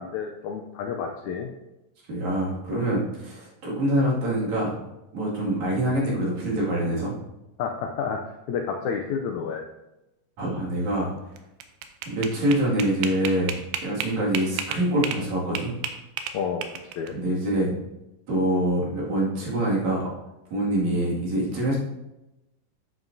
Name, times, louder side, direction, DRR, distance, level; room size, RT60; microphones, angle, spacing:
voice 1, 0.0-1.5 7.6-8.2 8.5-9.6 16.3-16.6 17.0-17.1, left 6 dB, 90° left, 3 dB, 1.6 m, -30 dB
voice 2, 2.1-4.7 5.1-7.1 10.4-11.1 12.1-15.7 17.1-17.7 18.3-20.1 20.5-21.8, right 1 dB, 55° right, -5 dB, 3.4 m, -25 dB
sound 1, 11.4-15.2 15.6-17.1, right 7 dB, 80° right, 2.3 m, -32 dB
11.0 x 7.3 x 2.7 m, 0.94 s
omnidirectional pair, 4.1 m